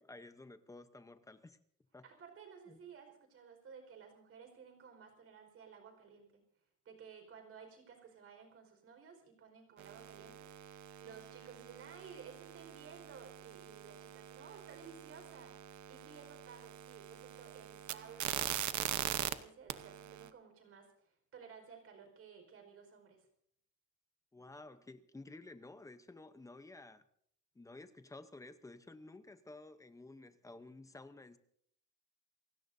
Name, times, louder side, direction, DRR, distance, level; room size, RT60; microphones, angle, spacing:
voice 1, 0.0-1.6 1.9-2.0 2.7-2.8 24.3-27.0 27.5-31.4, left 2 dB, 10° left, 0.8 m, -53 dB
voice 2, 2.0-6.4 6.8-23.3, right 6 dB, 45° right, 4.9 m, -56 dB
sound 1, 9.8-19.3 19.7-20.3, right 12 dB, 65° right, 1.0 m, -43 dB
29.0 x 17.0 x 2.7 m
cardioid pair, 180°, 31 cm